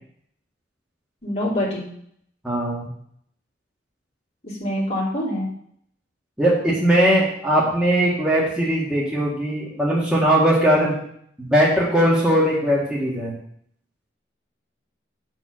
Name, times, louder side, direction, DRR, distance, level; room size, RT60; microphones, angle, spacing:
voice 1, 1.2-1.9 4.4-5.5, left 1 dB, 40° left, -5 dB, 3.0 m, -25 dB
voice 2, 2.4-2.9 6.4-11.0 11.4-13.3, right 1 dB, 5° right, -7 dB, 1.8 m, -19 dB
8.0 x 4.7 x 6.2 m, 0.67 s
head